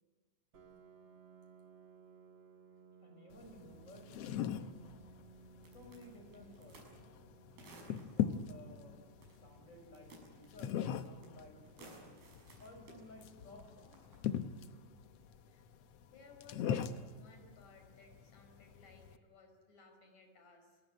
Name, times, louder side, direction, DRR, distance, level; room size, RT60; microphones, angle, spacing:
Piano, 0.5-16.0, right 6 dB, 40° right, 2.0 m, -62 dB
voice 1, 3.0-5.1 5.7-6.9 8.0-9.1 9.4-12.2 12.6-14.2, left 1 dB, 20° left, 4 dB, 6.4 m, -57 dB
sound 1, 3.3-19.2, left 9 dB, 80° left, 1.4 m, -42 dB
sound 2, 5.6-6.9 7.6-8.4 9.2-9.6 9.8-11.3 11.6-13.0 13.8-14.2, right 2 dB, 85° right, 8.3 m, -57 dB
voice 2, 16.1-20.8, left 3 dB, 50° left, 5 dB, 6.4 m, -61 dB
29.0 x 20.5 x 9.8 m, 1.4 s
omnidirectional pair, 4.2 m